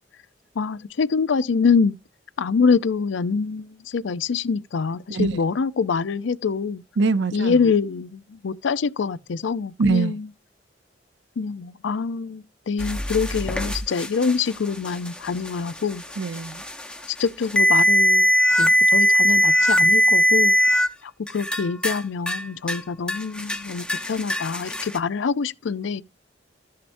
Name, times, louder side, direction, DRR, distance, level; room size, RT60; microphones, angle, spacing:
voice 1, 0.6-2.0 2.4-6.8 7.3-10.3 11.4-16.0 17.1-18.3 18.6-20.6 21.3-26.0, left 5 dB, 90° left, 0.5 m, -25 dB
voice 2, 7.0-7.6 9.8-10.1 16.2-16.6, right 4 dB, 75° right, 0.6 m, -23 dB
sound 1, 12.8-20.9 21.3-22.0 22.3-22.8 23.1-25.0, equal, 5° left, 0.7 m, -21 dB
13.5 x 6.6 x 2.6 m
head